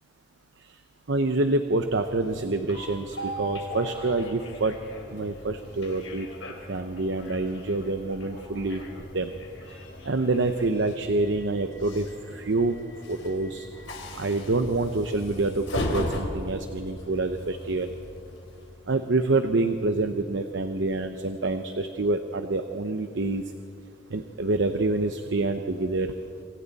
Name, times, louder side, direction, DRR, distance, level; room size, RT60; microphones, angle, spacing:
voice 1, 1.1-4.8 5.1-6.3 6.7-8.8 9.1-9.3 10.0-12.0 12.3-12.8 13.1-13.7 14.2-17.9 18.9-23.4 24.1-26.1, right 2 dB, 70° right, 8 dB, 0.9 m, -27 dB
Train, 1.7-19.0, left 1 dB, 90° left, 3.5 m, -38 dB
27.0 x 25.0 x 4.2 m, 2.6 s
head